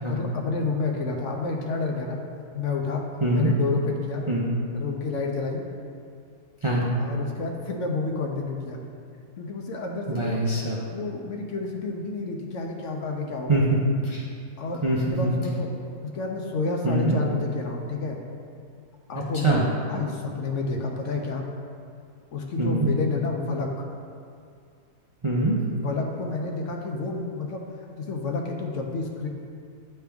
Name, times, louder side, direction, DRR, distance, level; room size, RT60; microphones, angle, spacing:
voice 1, 0.1-2.2 2.5-3.0 3.3-4.2 4.7-5.6 7.0-8.8 9.4-10.4 10.9-13.6 14.6-15.7 16.0-18.2 19.1-21.4 22.3-23.9 25.8-27.6 28.0-29.3, left 3 dB, 65° left, 1 dB, 0.9 m, -30 dB
voice 2, 3.2-3.5 4.3-4.4 6.6-6.9 10.1-10.8 13.5-14.2 14.8-15.3 16.8-17.2 19.4-19.6 22.6-22.9 25.2-25.5, right 2 dB, 40° right, -5 dB, 0.4 m, -23 dB
9.7 x 3.4 x 3.4 m, 2.3 s
omnidirectional pair, 1.5 m